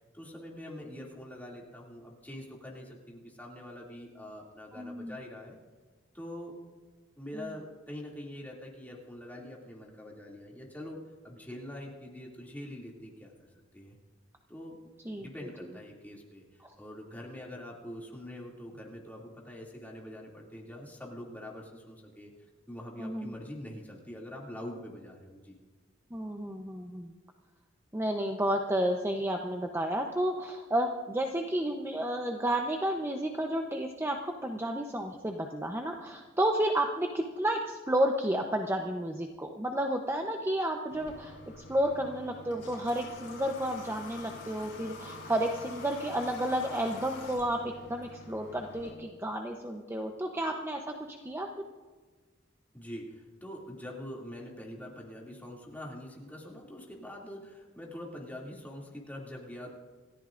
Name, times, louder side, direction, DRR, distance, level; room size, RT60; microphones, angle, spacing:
voice 1, 0.1-5.6 6.1-6.5 7.2-11.0 11.2-14.0 14.5-14.9 15.2-16.4 16.8-22.3 22.7-25.5 52.7-59.7, left 1 dB, 10° left, -3 dB, 2.6 m, -44 dB
voice 2, 4.7-5.1 7.3-7.5 15.0-15.3 16.6-16.7 23.0-23.3 26.1-27.1 27.9-51.5, right 1 dB, 15° right, 3 dB, 0.8 m, -31 dB
Water / Water tap faucet, 40.9-48.9, left 2 dB, 65° left, 5.8 m, -46 dB
28.0 x 14.0 x 2.6 m, 1.4 s
head